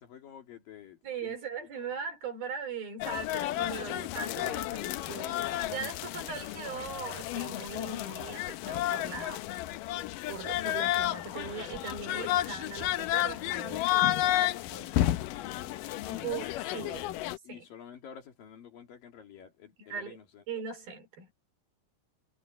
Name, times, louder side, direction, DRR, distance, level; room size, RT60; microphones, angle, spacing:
voice 1, 0.0-1.9 13.6-16.8 17.4-20.4, left 9 dB, 60° left, 3.8 m, -51 dB
voice 2, 1.0-9.5 10.3-13.8 14.7-14.9 16.1-17.1 17.5-17.6 19.9-20.2 20.5-21.3, right 5 dB, 60° right, 6.1 m, -39 dB
sound 1, 3.0-17.4, left 14 dB, 90° left, 1.9 m, -32 dB
sound 2, 3.3-8.6 9.9-12.4, left 3 dB, 20° left, 2.7 m, -52 dB
omnidirectional pair, 4.9 m